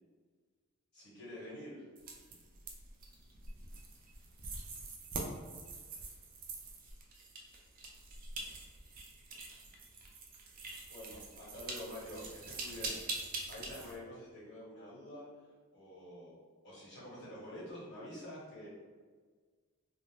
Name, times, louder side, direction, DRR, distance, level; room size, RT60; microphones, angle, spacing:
voice 1, 0.9-1.8 10.9-13.0 13.4-15.3 15.7-18.7, left 1 dB, 55° left, -7 dB, 1.3 m, -48 dB
sound 1, 2.0-14.0, right 3 dB, 40° right, 0.4 m, -45 dB
2.5 x 2.0 x 3.3 m, 1.5 s
head